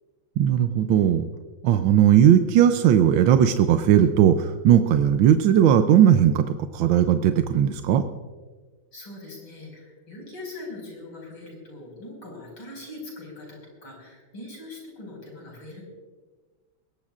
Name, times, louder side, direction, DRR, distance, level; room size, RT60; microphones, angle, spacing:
voice 1, 0.4-1.2 1.6-8.0, right 9 dB, 75° right, 8 dB, 1.4 m, -18 dB
voice 2, 8.9-15.8, left 2 dB, 85° left, -1 dB, 6.2 m, -41 dB
22.0 x 18.0 x 2.5 m, 1.4 s
omnidirectional pair, 2.2 m